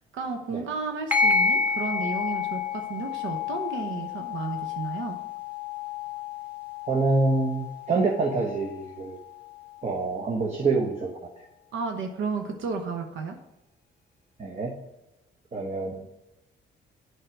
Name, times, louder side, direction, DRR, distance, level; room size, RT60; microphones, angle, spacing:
voice 1, 0.1-5.2 11.7-13.4, right 4 dB, 80° right, 5 dB, 1.0 m, -33 dB
sound 1, 1.1-10.1, left 5 dB, 10° right, 1.6 m, -30 dB
voice 2, 6.9-9.2 9.8-11.1 14.4-14.7 15.5-16.1, right 3 dB, 35° right, 0 dB, 1.1 m, -26 dB
7.9 x 4.8 x 6.0 m, 0.90 s
cardioid pair, 90°, 20 cm